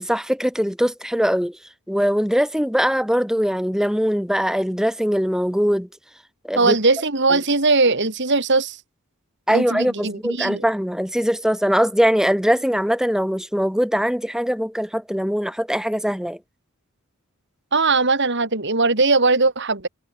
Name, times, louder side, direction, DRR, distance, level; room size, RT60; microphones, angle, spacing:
voice 1, 0.0-1.6 1.9-5.9 6.4-6.7 7.3-7.4 9.5-16.4, equal, ahead, 8.0 m, -21 dB
voice 2, 6.6-8.8 9.5-10.6 17.7-19.9, right 3 dB, 55° right, 3.5 m, -19 dB
head